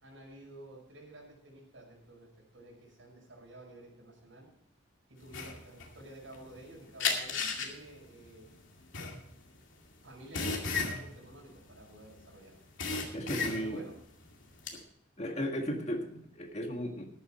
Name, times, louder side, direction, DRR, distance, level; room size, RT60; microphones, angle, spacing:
voice 1, 0.0-4.5 5.1-8.5 10.0-12.6 13.5-14.0, right 1 dB, 80° right, -2 dB, 5.5 m, -51 dB
sound 1, 5.3-6.6 7.0-12.3 12.5-13.9 14.3-14.8, left 4 dB, 85° left, 2.3 m, -34 dB
voice 2, 13.1-13.8 14.7-14.8 15.2-17.1, equal, 35° left, 4 dB, 1.8 m, -35 dB
13.5 x 11.0 x 4.4 m, 0.70 s
head